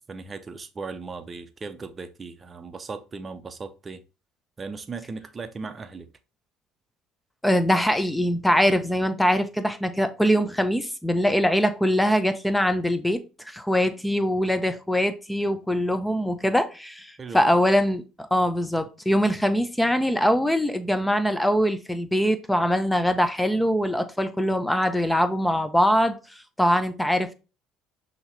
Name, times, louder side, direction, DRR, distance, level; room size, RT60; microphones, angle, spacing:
voice 1, 0.1-4.0 4.6-6.1 17.2-17.4, right 4 dB, 30° right, 0.7 m, -37 dB
voice 2, 7.4-18.0 18.3-26.2 26.6-27.3, equal, 5° left, 0.8 m, -23 dB
5.5 x 2.9 x 3.2 m
hypercardioid pair, 65°, 0 cm